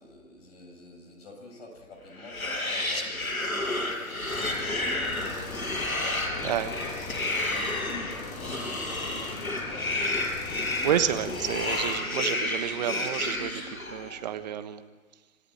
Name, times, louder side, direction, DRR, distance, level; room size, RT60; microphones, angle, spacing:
voice 1, 0.0-5.6 6.7-10.1, left 2 dB, 45° left, 2 dB, 7.1 m, -48 dB
sound 1, 2.1-14.2, left 2 dB, 80° left, 6.3 m, -31 dB
sound 2, 3.2-4.5 4.8-6.1 6.5-7.7 8.1-9.3, right 2 dB, 65° right, 6.4 m, -47 dB
sound 3, 4.3-12.0, left 5 dB, 15° left, 1.6 m, -40 dB
voice 2, 10.8-14.8, right 10 dB, 30° right, 11 dB, 1.2 m, -30 dB
26.5 x 15.5 x 9.1 m, 1.3 s
figure-of-eight pair, 140°, 43 cm